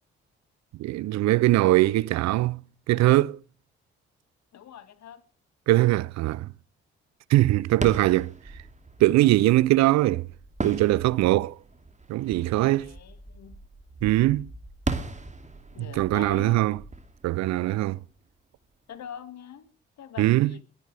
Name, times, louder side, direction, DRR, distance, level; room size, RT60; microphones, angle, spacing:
voice 1, 0.8-2.6 2.9-3.4 5.7-6.5 7.3-8.3 9.0-10.3 10.6-11.6 12.1-12.9 14.0-14.5 16.0-16.8 17.2-18.0 20.2-20.5, right 17 dB, 60° right, 0.5 m, -21 dB
voice 2, 4.5-5.2 12.8-13.6 15.7-16.6 18.9-19.7 20.0-20.6, left 9 dB, 60° left, 2.0 m, -43 dB
sound 1, 7.7-18.3, right 3 dB, 25° right, 2.6 m, -38 dB
21.5 x 10.5 x 3.4 m
hypercardioid pair, 45°, 31 cm